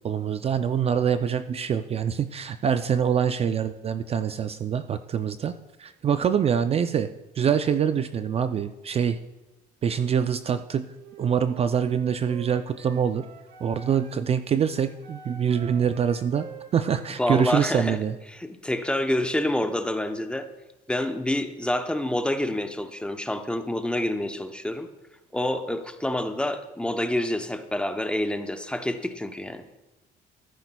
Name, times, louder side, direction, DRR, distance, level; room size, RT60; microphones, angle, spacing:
voice 1, 0.0-5.5 5.8-7.1 7.4-9.2 9.8-10.9 11.2-13.2 13.6-16.5 16.7-18.2, right 8 dB, 35° right, 10 dB, 0.4 m, -25 dB
Wind instrument woodwind instrument, 10.9-14.2 14.6-18.0, right 6 dB, 80° right, 1.4 m, -47 dB
voice 2, 17.2-18.0 18.3-20.5 20.9-24.9 25.3-29.6, left 1 dB, 5° left, 7 dB, 0.7 m, -27 dB
13.5 x 11.0 x 2.3 m, 1.0 s
cardioid pair, 110°, 17 cm